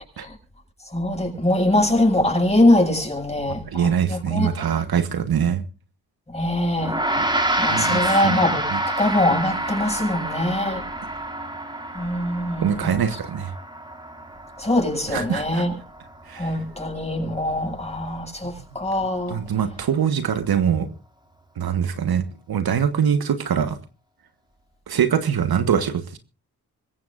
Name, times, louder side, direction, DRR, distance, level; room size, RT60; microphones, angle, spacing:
voice 1, 0.9-4.5 6.3-7.0 7.6-10.8 11.9-12.9 14.6-15.7 16.4-19.4, left 1 dB, 15° left, 7.9 m, -22 dB
voice 2, 3.5-5.6 7.2-7.3 7.7-8.4 8.7-8.8 12.6-13.5 15.1-15.7 16.3-16.5 18.4-18.8 19.3-20.9 21.6-23.8 24.9-26.2, right 8 dB, 65° right, 1.5 m, -23 dB
Gong, 6.8-16.4, right 1 dB, 10° right, 3.6 m, -28 dB
25.5 x 15.0 x 2.6 m
supercardioid pair, 45°, 40 cm